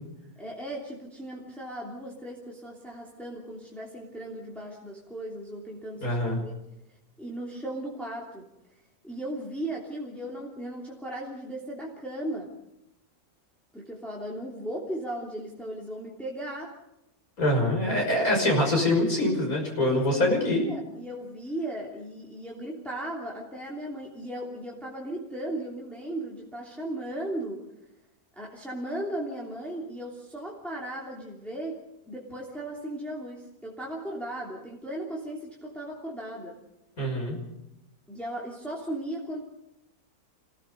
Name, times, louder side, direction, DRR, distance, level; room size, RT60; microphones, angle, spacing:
voice 1, 0.4-6.5 7.2-8.5 9.0-12.5 13.7-16.7 19.9-27.6 28.4-31.8 32.1-36.6 38.1-39.4, right 1 dB, ahead, -3 dB, 3.0 m, -36 dB
voice 2, 6.0-6.4 17.4-20.6 37.0-37.4, left 1 dB, 75° left, 0 dB, 6.5 m, -24 dB
28.0 x 17.5 x 5.3 m, 0.87 s
omnidirectional pair, 1.5 m